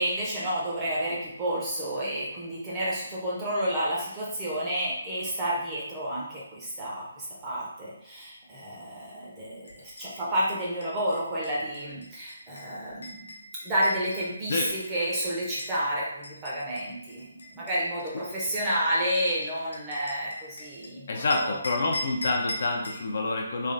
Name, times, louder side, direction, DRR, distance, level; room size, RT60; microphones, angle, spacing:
voice 1, 0.0-13.3 13.6-21.6, equal, 10° right, -7 dB, 0.7 m, -30 dB
sound 1, 9.7-15.8 16.2-20.9 21.3-23.0, left 1 dB, 80° left, 1.1 m, -41 dB
voice 2, 21.1-23.7, left 2 dB, 45° left, 1 dB, 0.5 m, -27 dB
3.3 x 2.4 x 3.8 m, 0.77 s
hypercardioid pair, 175°, 0 cm